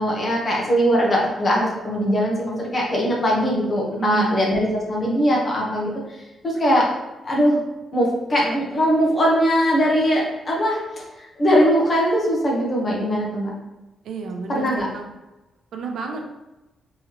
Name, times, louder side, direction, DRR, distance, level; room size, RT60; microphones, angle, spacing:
voice 1, 0.0-5.9 6.4-6.9 7.2-7.6 7.9-11.0 11.4-13.5 14.5-14.9, equal, 30° left, -3 dB, 1.2 m, -20 dB
voice 2, 4.0-4.4 14.0-15.1 15.7-16.3, right 5 dB, 70° right, 3 dB, 0.7 m, -29 dB
4.1 x 3.8 x 3.0 m, 1.0 s
wide cardioid pair, 170°, 0 cm